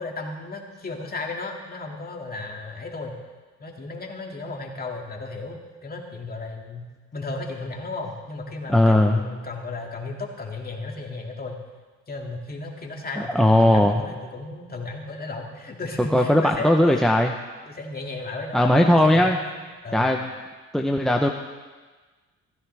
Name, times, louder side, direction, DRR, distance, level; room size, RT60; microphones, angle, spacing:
voice 1, 0.0-3.2 3.6-6.9 7.1-11.6 12.1-17.1 17.7-20.1, left 3 dB, 30° left, 0 dB, 2.2 m, -34 dB
voice 2, 8.7-9.2 13.3-14.0 16.1-17.3 18.5-19.4 19.9-20.3 20.7-21.3, left 1 dB, ahead, 2 dB, 0.7 m, -18 dB
16.0 x 14.0 x 3.4 m, 1.3 s
cardioid pair, 90°, 30 cm